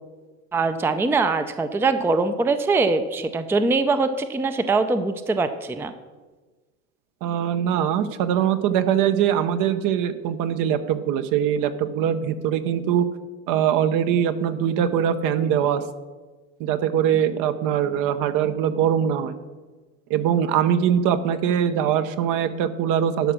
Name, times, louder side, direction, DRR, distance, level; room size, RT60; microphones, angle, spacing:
voice 1, 0.5-5.9, right 3 dB, 5° right, 10 dB, 0.5 m, -22 dB
voice 2, 7.2-13.1 13.5-15.8 16.6-19.4 20.1-23.3, right 9 dB, 55° right, 10 dB, 0.9 m, -22 dB
12.0 x 5.0 x 6.3 m, 1.3 s
supercardioid pair, 100°, 37 cm